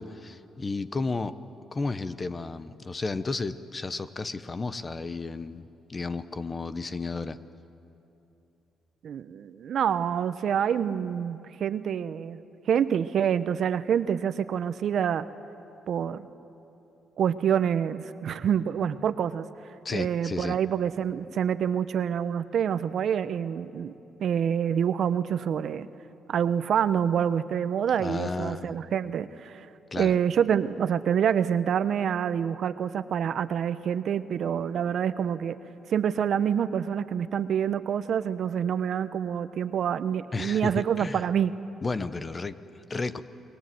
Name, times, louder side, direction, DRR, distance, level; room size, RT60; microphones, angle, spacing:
voice 1, 0.0-1.3 1.7-7.4 19.8-20.6 28.0-28.7 29.9-30.1 40.3-41.2 41.8-43.2, left 3 dB, 30° left, 13 dB, 1.0 m, -33 dB
voice 2, 9.0-12.4 12.7-15.3 15.9-16.3 17.2-19.5 19.9-23.9 24.2-25.9 26.3-29.7 30.0-35.6 35.9-41.5, right 8 dB, 65° right, 13 dB, 0.9 m, -27 dB
29.5 x 21.5 x 7.8 m, 2.9 s
cardioid pair, 90°, 0 cm